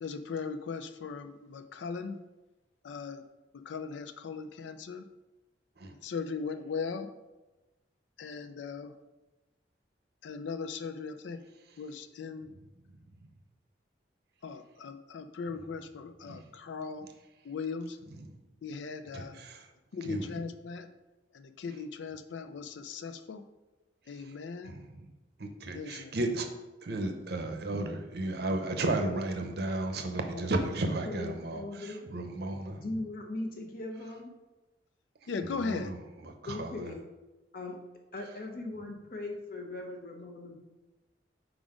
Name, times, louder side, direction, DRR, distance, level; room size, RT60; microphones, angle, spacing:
voice 1, 0.0-2.2 2.8-3.2 3.5-5.1 5.8-7.1 8.2-8.9 10.2-11.4 11.8-12.5 14.4-17.1 17.4-18.0 18.6-19.4 19.9-20.9 21.3-23.4 24.1-24.7 25.7-26.1 30.3-30.5 35.3-35.9, left 5 dB, 80° left, 9 dB, 0.4 m, -38 dB
voice 2, 19.1-19.6 20.1-20.2 24.6-24.9 25.4-26.5 26.8-32.9 35.6-36.0 36.4-36.9, right 2 dB, 60° right, 5 dB, 0.7 m, -33 dB
voice 3, 31.1-32.1 32.8-34.3 36.5-37.1 37.5-37.8 38.1-40.6, left 2 dB, 50° left, 2 dB, 0.9 m, -39 dB
4.8 x 3.9 x 4.9 m, 1.1 s
head